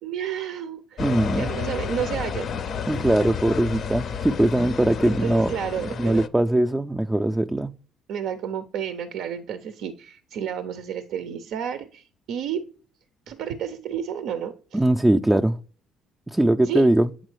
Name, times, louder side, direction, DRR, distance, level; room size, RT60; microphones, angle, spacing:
voice 1, 0.0-2.5 5.0-6.2 8.1-12.6 13.3-14.8 16.6-16.9, right 8 dB, 75° right, 0.5 m, -31 dB
sound 1, 1.0-6.3, left 7 dB, 55° left, 0.5 m, -31 dB
voice 2, 1.0-1.5 2.9-5.5 6.0-7.7 14.7-15.6 16.3-17.1, right 1 dB, 10° right, 0.3 m, -21 dB
7.9 x 3.7 x 3.2 m
supercardioid pair, 75°, 0 cm